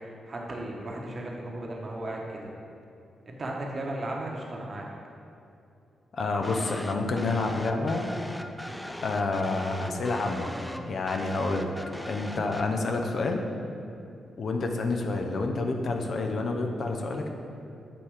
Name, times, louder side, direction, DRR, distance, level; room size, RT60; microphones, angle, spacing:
voice 1, 0.0-2.5 3.3-4.9, right 1 dB, 45° right, -1 dB, 1.1 m, -35 dB
voice 2, 6.1-8.1 9.0-10.5 10.9-11.7 12.1-13.4 14.4-17.3, left 3 dB, 60° left, 3 dB, 0.6 m, -28 dB
sound 1, 6.4-12.7, equal, 5° left, 0.4 m, -39 dB
7.6 x 2.9 x 4.9 m, 2.6 s
supercardioid pair, 45°, 0 cm